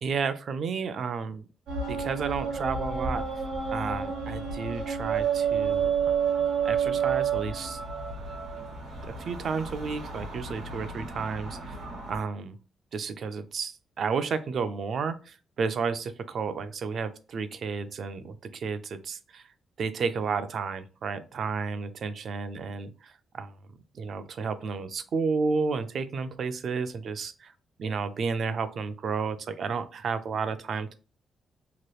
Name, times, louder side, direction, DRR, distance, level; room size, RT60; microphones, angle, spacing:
voice 1, 0.0-1.4 1.9-3.2 3.7-6.2 6.6-7.8 9.0-11.8 12.1-12.6 12.9-19.4 19.8-23.5 23.9-27.5 27.8-30.9, right 5 dB, 55° right, 11 dB, 0.4 m, -32 dB
sound 1, 1.7-12.2, right 6 dB, 85° right, 1.0 m, -30 dB
2.9 x 2.3 x 3.0 m, 0.35 s
cardioid pair, 120°, 0 cm